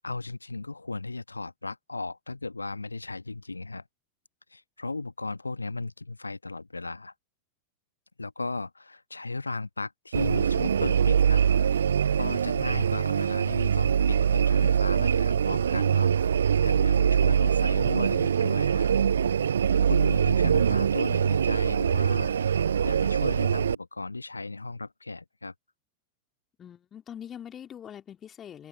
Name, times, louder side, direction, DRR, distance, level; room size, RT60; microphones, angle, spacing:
voice 1, 0.0-3.8 4.5-7.1 8.2-11.7 12.1-18.9 19.8-22.3 22.8-25.5, left 3 dB, 80° left, 1.4 m, -35 dB
sound 1, 10.1-23.7, right 8 dB, 70° right, 0.5 m, -23 dB
voice 2, 26.6-28.7, left 9 dB, 25° left, 3.0 m, -43 dB
open air
figure-of-eight pair, 90°, 0 cm